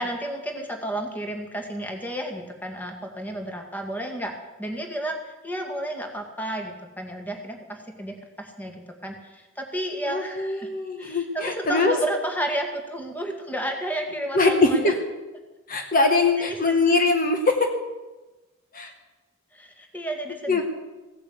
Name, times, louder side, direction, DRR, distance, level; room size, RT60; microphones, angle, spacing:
voice 1, 0.0-10.7 11.0-14.9 16.5-16.7 19.5-20.6, right 1 dB, 10° left, 3 dB, 1.9 m, -32 dB
voice 2, 10.1-12.0 14.3-15.0 15.7-17.7 18.7-18.9 20.5-20.6, left 3 dB, 45° left, 4 dB, 1.4 m, -22 dB
16.5 x 8.7 x 8.0 m, 1.1 s
head